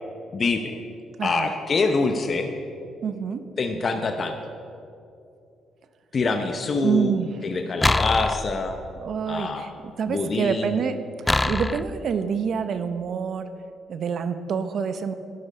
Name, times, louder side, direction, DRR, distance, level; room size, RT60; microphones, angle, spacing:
voice 1, 0.3-0.8 1.2-2.5 3.6-4.4 6.1-7.1 7.4-8.8 9.3-9.7 10.1-10.7, left 3 dB, 45° left, 5 dB, 0.9 m, -25 dB
voice 2, 1.2-1.5 3.0-3.4 6.8-7.3 9.0-9.7 10.0-11.0 11.4-13.5 13.9-15.1, right 6 dB, 60° right, 10 dB, 0.7 m, -26 dB
sound 1, 7.8-9.0 11.3-12.0, left 2 dB, 15° left, 0.4 m, -24 dB
12.5 x 11.0 x 5.4 m, 2.6 s
cardioid pair, 90°, 0 cm